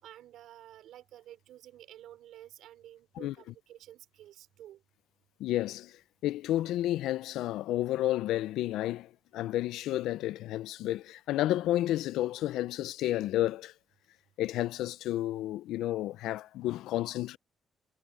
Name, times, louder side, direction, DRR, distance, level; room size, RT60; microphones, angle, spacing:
voice 1, 0.0-4.8, right 12 dB, 80° right, 5.0 m, -51 dB
voice 2, 5.4-6.0 6.2-13.7 14.4-17.4, left 14 dB, 90° left, 0.4 m, -31 dB
cardioid pair, 90°, 0 cm